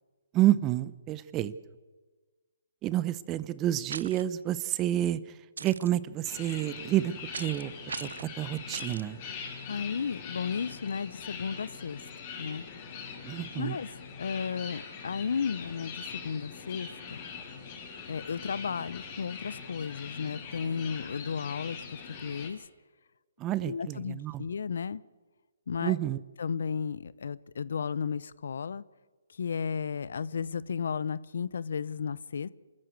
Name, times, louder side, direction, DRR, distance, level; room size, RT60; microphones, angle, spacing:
voice 1, 0.3-1.5 2.8-5.2 5.6-7.1 7.4-7.7 8.0-8.1 8.4-9.2 13.2-13.8 23.4-24.4 25.8-26.2, right 13 dB, 20° right, 17 dB, 0.8 m, -29 dB
sound 1, 3.9-4.2 5.6-5.9 7.3-7.6 7.9-8.3 8.7-9.0, right 5 dB, 75° right, 0.6 m, -39 dB
sound 2, 6.2-22.5, left 5 dB, 35° left, 5.4 m, -42 dB
voice 2, 9.7-12.0 12.4-12.6 13.6-13.9 14.2-17.2 18.1-22.7 23.6-25.0 25.7-26.0 26.4-28.8 29.4-32.5, left 6 dB, 70° left, 20 dB, 0.8 m, -34 dB
27.5 x 14.0 x 8.1 m, 1.3 s
hypercardioid pair, 150°, 0 cm